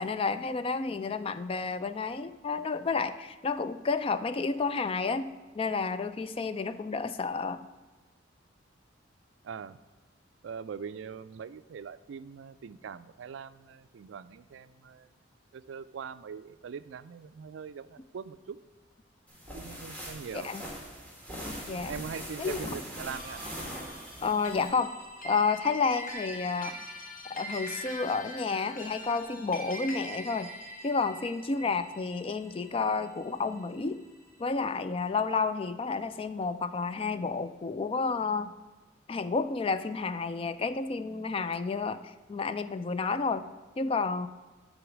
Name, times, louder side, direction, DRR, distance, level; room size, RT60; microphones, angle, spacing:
voice 1, 0.0-5.3 5.6-7.6 20.4-20.6 21.7-21.9 22.4-22.6 24.2-24.9 25.2-26.8 27.3-30.5 30.8-34.0 34.4-38.5 39.1-44.3, left 4 dB, 30° left, 12 dB, 0.3 m, -30 dB
voice 2, 9.4-9.8 10.4-15.1 15.5-18.6 19.5-20.5 21.8-23.4, right 6 dB, 70° right, 14 dB, 0.3 m, -42 dB
sound 1, 19.3-24.7, equal, 10° left, 1.6 m, -41 dB
sound 2, 23.1-33.7, equal, 45° left, 1.3 m, -43 dB
10.5 x 4.0 x 6.0 m, 1.2 s
head